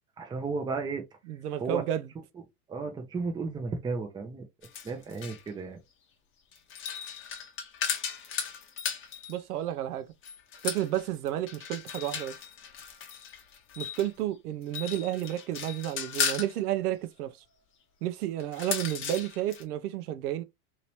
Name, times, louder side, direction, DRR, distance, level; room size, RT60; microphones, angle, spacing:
voice 1, 0.2-1.0 1.6-1.8 2.7-4.5 4.8-5.8, right 4 dB, 10° right, 0.5 m, -33 dB
voice 2, 1.3-2.1 9.3-10.1 10.6-12.3 13.8-17.4 18.0-20.4, right 12 dB, 75° right, 0.6 m, -31 dB
sound 1, 4.6-5.5 6.5-9.4 10.2-14.1 14.6-16.5 18.4-19.6, left 7 dB, 30° left, 0.8 m, -36 dB
2.9 x 2.9 x 3.0 m
hypercardioid pair, 120°, 45 cm